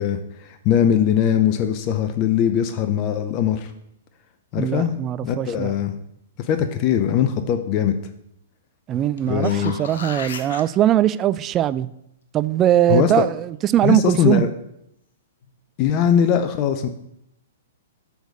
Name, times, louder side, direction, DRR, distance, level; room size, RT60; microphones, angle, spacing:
voice 1, 0.0-3.7 4.5-4.9 5.2-6.0 6.4-7.9 9.3-9.8 12.9-13.3 13.8-14.5 15.8-16.9, left 9 dB, 40° left, 0.6 m, -20 dB
voice 2, 4.5-5.7 8.9-11.9 12.3-14.4, right 12 dB, 25° right, 0.3 m, -20 dB
sound 1, 9.2-10.6 15.4-15.5, left 5 dB, 65° left, 0.9 m, -34 dB
6.9 x 4.0 x 6.5 m
hypercardioid pair, 115°, 0 cm